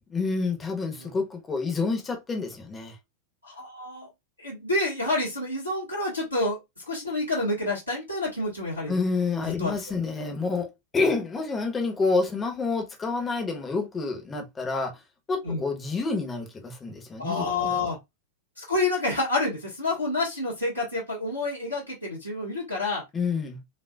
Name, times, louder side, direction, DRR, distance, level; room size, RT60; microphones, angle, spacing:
voice 1, 0.1-3.0 8.9-15.0 15.3-17.7 23.1-23.6, left 4 dB, 20° left, 1.2 m, -28 dB
voice 2, 3.4-4.1 4.4-9.0 9.4-9.7 15.4-15.6 17.2-18.0 18.6-23.0, left 2 dB, 85° right, 1.8 m, -28 dB
5.2 x 2.6 x 2.4 m
figure-of-eight pair, 90°, 0 cm